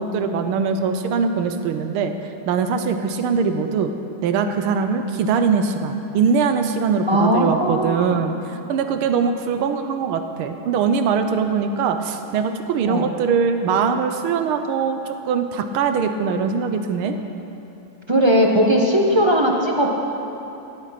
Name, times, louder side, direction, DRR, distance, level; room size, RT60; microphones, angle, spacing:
voice 1, 0.0-2.1 2.5-3.9 4.2-17.2, right 6 dB, 90° right, 7 dB, 1.6 m, -22 dB
voice 2, 7.1-8.2 12.8-13.1 18.1-19.9, equal, 15° right, -1 dB, 1.0 m, -18 dB
15.5 x 11.0 x 5.9 m, 3.0 s
omnidirectional pair, 2.3 m